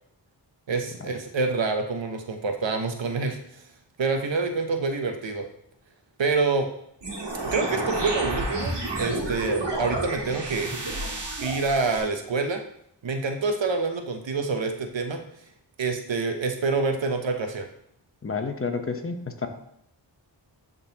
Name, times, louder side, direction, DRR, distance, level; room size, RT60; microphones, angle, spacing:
voice 1, 0.7-3.6 4.0-5.5 6.2-6.7 7.5-10.8 11.4-12.6 13.0-15.2 15.8-17.7, right 4 dB, 80° right, 6 dB, 0.8 m, -27 dB
sound 1, 7.0-12.0, right 2 dB, 65° right, 1.8 m, -30 dB
voice 2, 18.2-19.5, left 4 dB, 30° left, 6 dB, 0.8 m, -30 dB
10.5 x 3.8 x 2.8 m, 0.73 s
wide cardioid pair, 50°, 44 cm